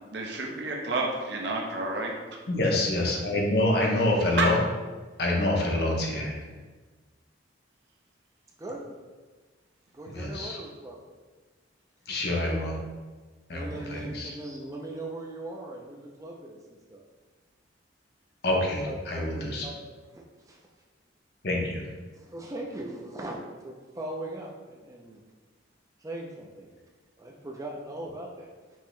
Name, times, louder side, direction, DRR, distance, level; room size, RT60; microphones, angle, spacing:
voice 1, 0.1-2.2 3.3-3.4 4.4-4.5, right 3 dB, 60° right, 0 dB, 0.7 m, -30 dB
voice 2, 2.5-4.6 5.2-6.4 10.1-10.6 12.1-12.8 13.5-14.3 18.4-19.6 21.4-21.8, left 1 dB, 55° left, 0 dB, 0.8 m, -26 dB
voice 3, 9.9-11.0 12.1-12.2 13.5-16.6 16.9-17.0 18.9-19.8 20.1-20.6 22.1-25.2 26.0-26.7 27.2-28.5, right 1 dB, 15° right, -1 dB, 0.4 m, -39 dB
5.3 x 2.9 x 3.1 m, 1.3 s
head